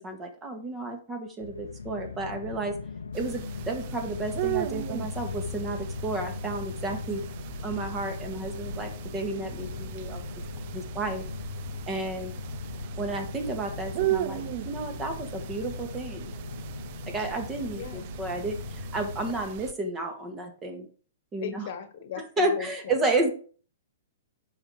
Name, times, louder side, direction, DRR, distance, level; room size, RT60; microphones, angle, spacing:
voice 1, 0.0-2.8 3.1-7.2 7.6-10.3 10.7-11.2 11.9-12.3 13.0-16.4 17.1-20.9 21.3-21.7 22.2-23.3, right 2 dB, 20° right, 5 dB, 1.9 m, -32 dB
sound 1, 1.4-19.3, left 5 dB, 85° left, 0.7 m, -39 dB
sound 2, 3.1-19.7, right 14 dB, 50° right, 0.5 m, -37 dB
voice 2, 17.7-18.1 21.4-23.0, left 7 dB, 55° left, 11 dB, 1.3 m, -38 dB
7.1 x 5.6 x 4.9 m, 0.41 s
hypercardioid pair, 120°, 0 cm